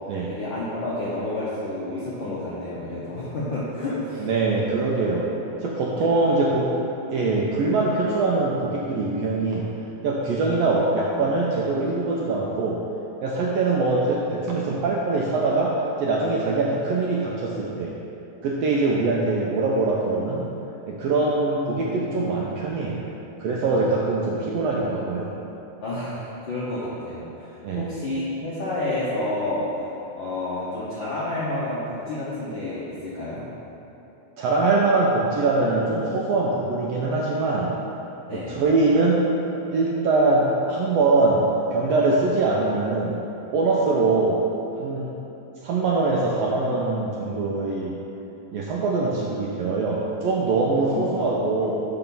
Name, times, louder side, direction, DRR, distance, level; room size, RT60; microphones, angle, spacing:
voice 1, 0.3-4.3 6.0-6.1 23.7-23.9 25.8-29.6 30.2-33.4 38.3-38.6 50.8-51.1, left 2 dB, 75° left, -9 dB, 1.1 m, -30 dB
voice 2, 4.2-5.3 5.6-6.7 7.1-9.7 10.0-12.8 13.2-18.0 18.4-20.5 20.9-23.1 23.4-25.3 27.6-27.9 34.4-37.7 38.3-39.3 39.7-43.2 43.5-44.4 44.8-45.1 45.6-48.0 48.5-51.7, right 3 dB, 85° right, -3 dB, 1.5 m, -23 dB
5.8 x 4.8 x 5.3 m, 3.0 s
omnidirectional pair, 3.3 m